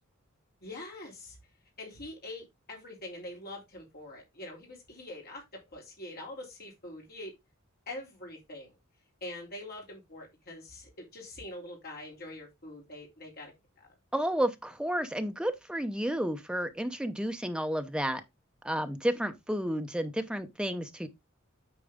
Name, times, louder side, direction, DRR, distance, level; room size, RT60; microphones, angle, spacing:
voice 1, 0.6-1.4 1.8-5.4 5.7-7.3 7.9-8.8 9.2-13.5 13.8-13.9, left 1 dB, 45° left, 3.4 m, -44 dB
voice 2, 14.1-18.2 18.6-21.1, equal, 5° right, 0.6 m, -31 dB
8.6 x 4.5 x 3.6 m
head